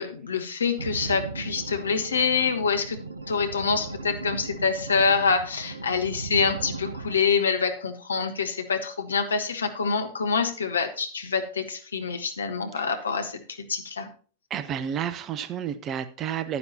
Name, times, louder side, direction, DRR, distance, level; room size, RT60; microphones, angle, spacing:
voice 1, 0.0-3.0 3.3-14.1, left 5 dB, 70° left, 1.2 m, -26 dB
sound 1, 0.8-7.2, right 4 dB, 75° right, 0.7 m, -37 dB
voice 2, 14.5-16.6, right 9 dB, 30° right, 0.8 m, -30 dB
11.0 x 9.6 x 2.9 m
figure-of-eight pair, 90°, 0 cm